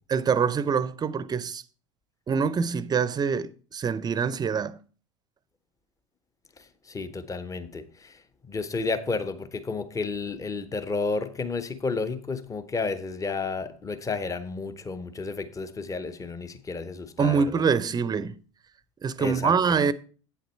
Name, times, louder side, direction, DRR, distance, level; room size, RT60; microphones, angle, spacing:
voice 1, 0.1-1.6 2.3-4.8 17.2-18.4 19.0-19.9, right 6 dB, 25° right, 0.6 m, -25 dB
voice 2, 6.9-8.1 8.5-17.4 19.2-19.5, left 4 dB, 20° left, 0.9 m, -31 dB
8.4 x 7.9 x 4.4 m
hypercardioid pair, 80°, 16 cm